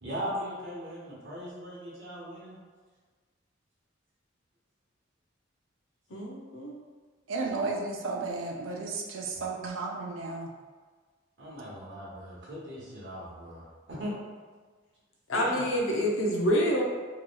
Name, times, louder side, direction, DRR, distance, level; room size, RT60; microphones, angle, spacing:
voice 1, 0.0-2.6 9.3-9.4 11.4-14.1 15.4-15.6, equal, 60° right, -7 dB, 1.1 m, -39 dB
voice 2, 6.1-6.7 15.3-16.8, equal, 80° left, -2 dB, 0.6 m, -27 dB
voice 3, 7.3-10.5, right 3 dB, 90° right, 1 dB, 0.4 m, -33 dB
2.9 x 2.9 x 2.2 m, 1.4 s
head